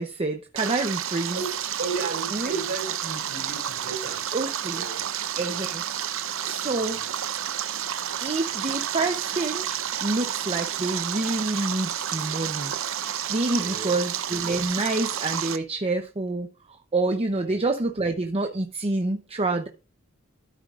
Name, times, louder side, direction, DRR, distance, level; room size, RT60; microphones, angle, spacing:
voice 1, 0.0-1.4 2.3-2.6 4.3-4.9 5.4-5.8 6.4-7.0 8.2-12.7 13.0-16.5 16.9-19.7, right 2 dB, 30° right, 0.7 m, -27 dB
Stream, 0.6-15.6, right 10 dB, 65° right, 0.8 m, -30 dB
voice 2, 1.8-4.3 4.7-5.0 5.4-5.6 6.7-7.0 8.1-8.2 13.5-14.0 17.4-17.6, right 4 dB, 50° right, 5.2 m, -34 dB
13.0 x 8.8 x 2.5 m
head